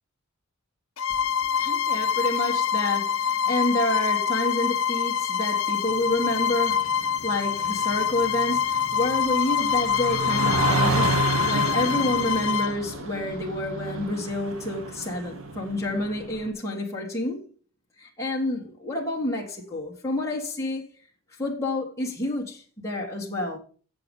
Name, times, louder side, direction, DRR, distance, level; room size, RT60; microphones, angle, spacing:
Bowed string instrument, 1.0-12.8, left 8 dB, 65° left, 0.7 m, -25 dB
voice 1, 1.5-17.5 18.0-20.9 21.4-23.6, left 1 dB, 15° left, 1.6 m, -29 dB
sound 1, 5.9-16.5, right 3 dB, 70° right, 1.3 m, -31 dB
7.7 x 6.9 x 5.3 m
head